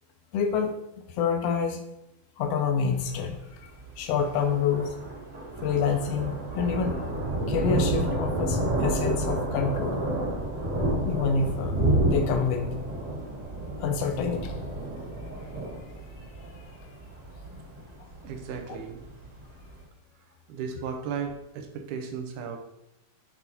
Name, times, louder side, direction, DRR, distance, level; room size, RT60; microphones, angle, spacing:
voice 1, 0.3-0.7 1.1-1.8 2.4-4.9 5.6-7.1 7.5-10.0 11.1-11.8 12.1-12.7 13.8-14.6 18.7-18.8, left 6 dB, 80° left, 5 dB, 1.4 m, -27 dB
Thunder, 2.8-19.8, right 1 dB, 40° right, 1.1 m, -30 dB
voice 2, 18.2-19.0 20.5-22.6, right 6 dB, 85° right, 4 dB, 2.4 m, -35 dB
7.9 x 4.0 x 4.3 m, 0.89 s
omnidirectional pair, 3.5 m